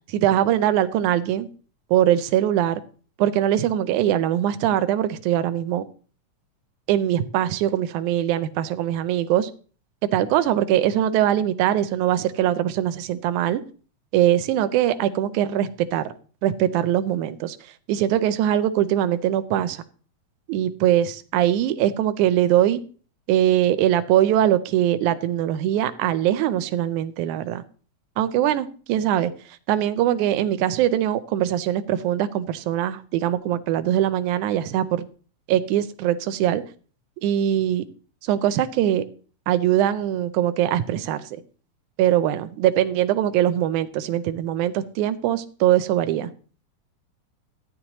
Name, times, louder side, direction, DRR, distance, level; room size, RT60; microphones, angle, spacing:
voice 1, 0.1-1.5 1.9-2.8 3.2-5.8 6.9-9.5 10.1-13.6 14.1-16.1 16.4-17.6 17.9-19.8 20.5-22.8 23.3-27.6 28.2-29.3 29.7-35.0 35.5-36.6 37.2-37.8 38.2-39.0 39.5-41.2 42.0-46.3, right 11 dB, 80° right, 12 dB, 2.2 m, -22 dB
14.5 x 10.0 x 3.0 m, 0.39 s
omnidirectional pair, 3.5 m